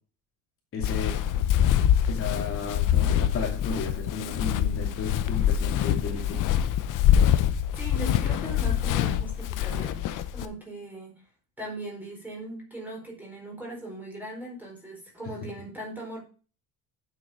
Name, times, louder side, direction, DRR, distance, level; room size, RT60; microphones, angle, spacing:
voice 1, 0.7-1.2 2.1-6.4, left 4 dB, 35° left, 0 dB, 2.6 m, -33 dB
Walk footsteps, 0.8-10.5, left 10 dB, 55° left, 1.0 m, -25 dB
voice 2, 7.8-11.2 11.6-16.2, right 1 dB, 5° right, -2 dB, 4.4 m, -39 dB
9.3 x 7.7 x 5.0 m, 0.37 s
cardioid pair, 170°, 37 cm